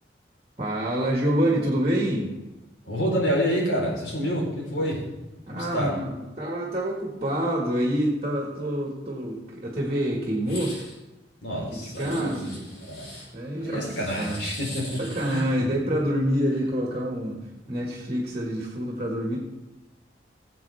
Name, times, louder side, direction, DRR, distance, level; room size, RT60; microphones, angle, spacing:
voice 1, 0.6-2.3 5.5-10.8 11.7-12.6 13.3-14.4 15.0-17.4 17.7-19.4, equal, 30° right, -2 dB, 1.9 m, -27 dB
voice 2, 2.8-5.0 5.5-5.9 11.4-13.1 13.6-15.0 15.3-15.4, equal, 85° left, -3 dB, 4.2 m, -28 dB
sound 1, 10.4-11.0 11.9-13.3 13.9-15.6, left 1 dB, 55° left, 4.4 m, -42 dB
18.5 x 7.6 x 3.5 m, 1.0 s
head